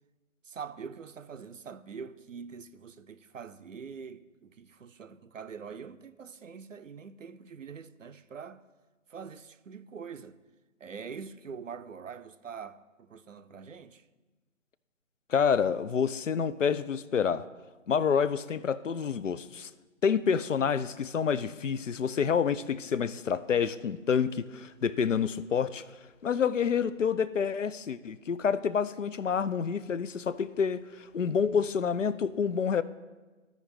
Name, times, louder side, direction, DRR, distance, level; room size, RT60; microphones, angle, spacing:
voice 1, 0.4-8.6 9.1-10.4 10.8-14.0, right 6 dB, 65° right, 0.6 m, -44 dB
voice 2, 15.3-17.5 17.9-19.7 20.0-25.8 26.2-32.8, left 7 dB, 65° left, 0.5 m, -28 dB
15.0 x 5.1 x 3.2 m
figure-of-eight pair, 155°, 40 cm